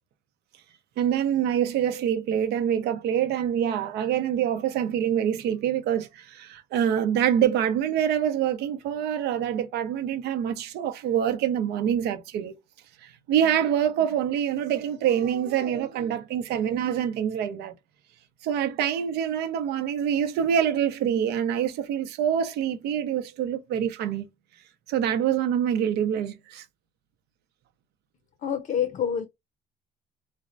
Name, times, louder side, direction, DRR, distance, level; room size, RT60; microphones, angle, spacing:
voice 1, 1.0-12.5 13.0-17.7 18.4-24.3 24.9-26.6, right 9 dB, 80° right, 0.7 m, -25 dB
voice 2, 28.4-29.3, left 8 dB, 50° left, 0.5 m, -27 dB
4.3 x 2.1 x 2.5 m
cardioid pair, 110°, 17 cm